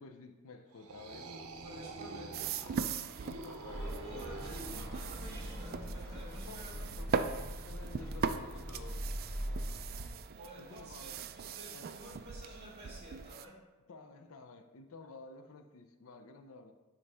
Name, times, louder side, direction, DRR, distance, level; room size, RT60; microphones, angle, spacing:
voice 1, 0.0-1.3 3.2-4.6 6.3-9.2 10.6-11.2 11.7-11.9 13.9-16.7, left 3 dB, 70° left, 7 dB, 0.5 m, -52 dB
sound 1, 0.7-5.5, right 3 dB, 75° right, 0.7 m, -47 dB
voice 2, 1.6-3.1 4.0-7.2 10.4-13.6, equal, 30° right, -4 dB, 2.3 m, -52 dB
sound 2, 2.3-13.5, right 6 dB, 45° right, 0.3 m, -40 dB
sound 3, 3.7-10.1, equal, 5° left, 2.0 m, -41 dB
9.5 x 3.9 x 3.5 m, 1.2 s
head